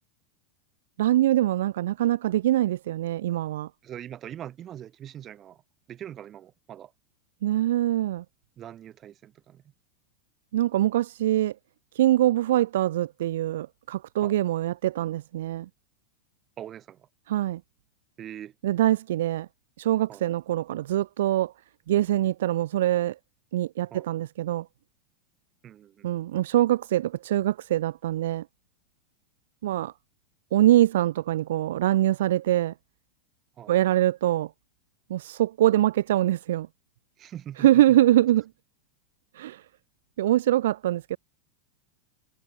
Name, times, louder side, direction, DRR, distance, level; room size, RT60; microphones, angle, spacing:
voice 1, 1.0-3.7 7.4-8.2 10.5-11.5 11.9-15.7 17.3-17.6 18.6-19.5 19.8-21.5 21.9-23.2 23.5-24.7 26.0-28.4 29.6-29.9 30.5-32.7 33.7-34.5 35.1-36.7 37.6-38.5 39.3-39.6 40.2-41.2, right 13 dB, 55° right, 0.5 m, -23 dB
voice 2, 3.8-5.6 5.9-6.9 8.6-9.6 14.2-14.4 16.6-17.1 18.2-18.5 20.1-20.2 23.9-24.0 25.6-26.1 33.6-33.7 37.2-37.7, right 10 dB, 30° right, 4.5 m, -42 dB
figure-of-eight pair, 90°, 0 cm